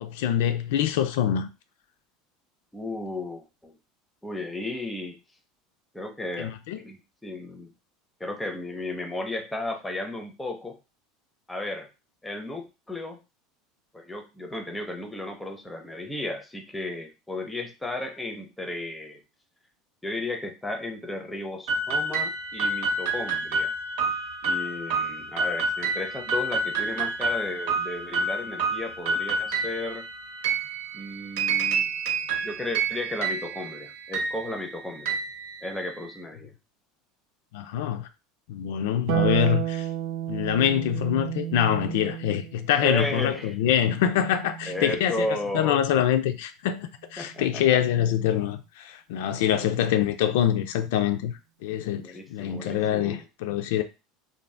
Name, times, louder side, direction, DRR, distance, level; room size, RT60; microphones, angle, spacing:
voice 1, 0.0-1.5 6.4-6.8 37.5-38.1 38.5-39.9 40.3-53.8, left 10 dB, 80° left, 0.3 m, -25 dB
voice 2, 2.7-3.8 4.2-5.2 5.9-7.7 8.2-10.8 11.5-11.9 12.2-13.2 13.9-19.2 20.0-23.7 24.4-30.0 30.9-31.9 32.4-35.2 35.6-36.5 42.8-43.6 44.7-45.8 47.2-47.8 48.1-48.2 52.0-53.3, left 1 dB, 5° left, 0.5 m, -34 dB
sound 1, 21.7-36.1, right 3 dB, 85° right, 0.9 m, -29 dB
Harp, 39.1-45.6 47.2-48.2, right 13 dB, 55° right, 0.5 m, -33 dB
2.5 x 2.0 x 3.2 m
supercardioid pair, 145°, 0 cm